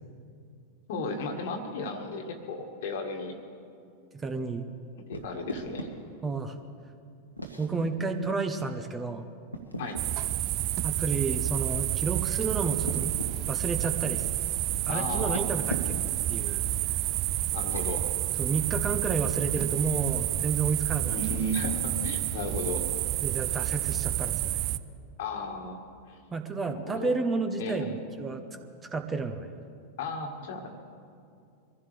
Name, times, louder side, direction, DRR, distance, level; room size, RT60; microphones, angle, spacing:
voice 1, 0.9-3.4 5.1-5.9 9.8-10.0 14.9-15.4 17.5-18.1 21.1-22.9 25.2-25.8 26.1-26.2 26.7-27.2 27.6-28.0 30.0-30.8, left 2 dB, 55° left, 5 dB, 1.7 m, -34 dB
voice 2, 4.2-4.7 6.2-6.6 7.6-9.3 10.8-13.2 13.5-14.3 14.9-16.0 16.3-16.6 18.4-21.2 23.2-24.7 26.3-27.9 28.2-28.4 28.9-29.5, right 4 dB, 20° right, 7 dB, 1.0 m, -31 dB
sound 1, 5.1-5.9 7.4-7.8 9.5-10.1 12.0-13.3 15.1-16.2 17.5-17.9 19.5-19.7 21.3-21.6, right 1 dB, 90° left, 1.5 m, -39 dB
sound 2, 10.0-24.8, right 14 dB, 40° right, 0.5 m, -29 dB
24.0 x 15.5 x 3.5 m, 2.4 s
figure-of-eight pair, 90°, 0 cm